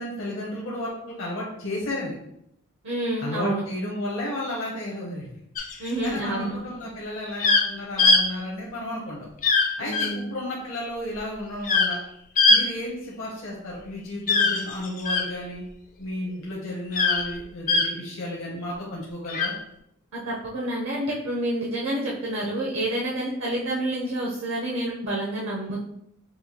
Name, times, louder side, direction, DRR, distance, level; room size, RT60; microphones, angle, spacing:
voice 1, 0.0-2.1 3.2-5.3 5.8-9.2 9.6-12.0 12.5-15.6 16.0-19.5, left 1 dB, 60° left, -4 dB, 0.9 m, -33 dB
voice 2, 2.8-3.6 5.8-6.6 9.8-10.3 20.1-25.8, right 1 dB, 60° right, -3 dB, 0.7 m, -28 dB
sound 1, 5.6-6.1 7.4-7.6 8.0-8.2 9.4-9.7 9.9-10.1 11.6-12.0 12.4-12.6 14.3-15.2 16.9-17.2 17.7-17.8 19.3-19.5, left 3 dB, 35° left, 0.5 m, -20 dB
5.5 x 2.3 x 2.9 m, 0.75 s
head